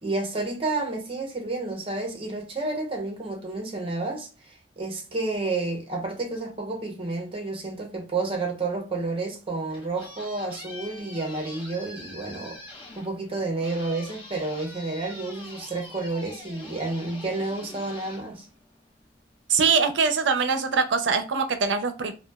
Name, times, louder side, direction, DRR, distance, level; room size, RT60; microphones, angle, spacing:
voice 1, 0.0-12.6 12.9-18.5, right 3 dB, 30° right, 0.7 m, -30 dB
sound 1, 9.4-19.1, left 2 dB, 30° left, 1.0 m, -45 dB
voice 2, 19.5-22.1, right 5 dB, 90° right, 0.5 m, -23 dB
2.9 x 2.2 x 2.2 m
head